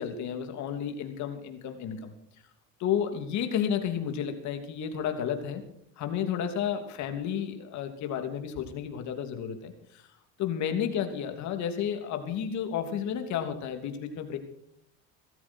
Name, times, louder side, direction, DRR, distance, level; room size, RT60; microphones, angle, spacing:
voice 1, 0.0-2.1 2.8-5.6 6.0-10.0 10.4-14.4, left 8 dB, 55° left, 6 dB, 3.1 m, -32 dB
18.0 x 14.5 x 4.6 m, 0.71 s
supercardioid pair, 120°, 34 cm